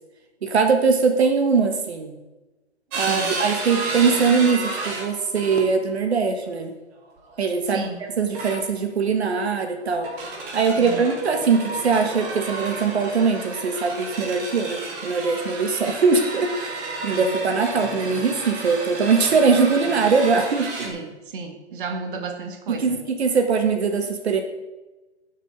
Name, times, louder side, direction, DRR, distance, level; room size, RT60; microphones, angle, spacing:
voice 1, 0.4-2.2 2.9-6.7 7.4-10.1 10.5-21.0 22.7-24.4, right 5 dB, 70° right, 5 dB, 1.4 m, -21 dB
sound 1, 2.9-5.8 7.1-7.3 8.3-8.9 9.9-20.9, right 3 dB, 5° right, 0.4 m, -32 dB
voice 2, 3.0-3.4 7.7-8.0 10.7-11.0 17.1-17.4 19.9-20.0 20.8-23.0, right 4 dB, 50° right, 5 dB, 1.6 m, -33 dB
8.6 x 6.6 x 7.9 m, 1.1 s
hypercardioid pair, 145°, 34 cm